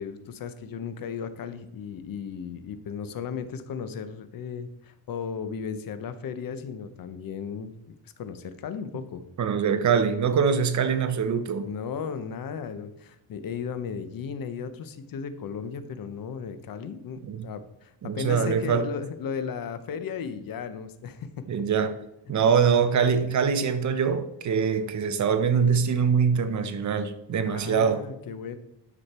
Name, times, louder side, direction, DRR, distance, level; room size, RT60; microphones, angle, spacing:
voice 1, 0.0-9.2 11.6-21.6 27.4-28.6, left 6 dB, 50° left, 0.9 m, -35 dB
voice 2, 9.4-11.7 17.2-17.5 18.0-18.9 21.5-22.0 22.3-28.0, right 6 dB, 40° right, 0.7 m, -23 dB
9.8 x 6.4 x 4.3 m
cardioid pair, 140°, 43 cm